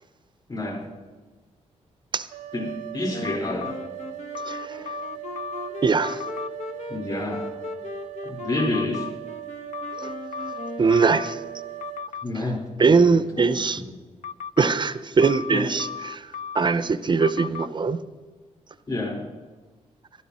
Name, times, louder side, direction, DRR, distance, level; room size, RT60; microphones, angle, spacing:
voice 1, 0.5-0.8 2.5-3.7 6.9-7.4 8.2-9.1 12.2-12.6 13.4-13.5 15.5-15.7 18.9-19.2, left 2 dB, 35° left, 0 dB, 4.7 m, -28 dB
sound 1, 2.3-12.1, right 16 dB, 85° right, 0.6 m, -39 dB
Wind instrument woodwind instrument, 3.1-11.9, left 3 dB, 70° left, 1.4 m, -38 dB
sound 2, 3.2-3.7 4.3-5.7 6.0-6.5 8.6-9.1 9.7-11.4 11.8-12.3 14.2-14.7 15.2-16.7 17.2-17.7, left 7 dB, 90° left, 0.5 m, -35 dB
voice 2, 4.4-5.0 5.8-6.3 10.0-10.1 10.8-11.4 12.3-12.5 12.8-13.8 14.6-18.0, right 4 dB, 40° right, 13 dB, 0.6 m, -22 dB
15.0 x 12.5 x 4.3 m, 1.3 s
cardioid pair, 85°, 12 cm